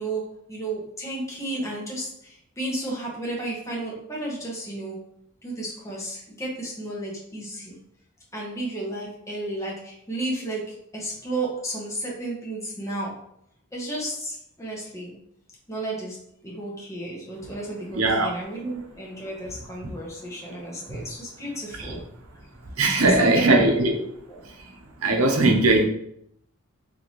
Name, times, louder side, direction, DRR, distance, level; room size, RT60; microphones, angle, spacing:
voice 1, 0.0-5.0 5.4-7.8 8.3-13.1 13.7-15.1 15.7-16.2 16.4-22.0 23.0-23.8 24.3-24.4, right 2 dB, 15° left, -4 dB, 1.0 m, -32 dB
voice 2, 17.9-18.4 20.9-21.0 21.8-21.9 22.8-24.0 25.0-25.8, right 2 dB, 90° right, 2 dB, 0.7 m, -20 dB
4.0 x 2.8 x 3.0 m, 0.72 s
head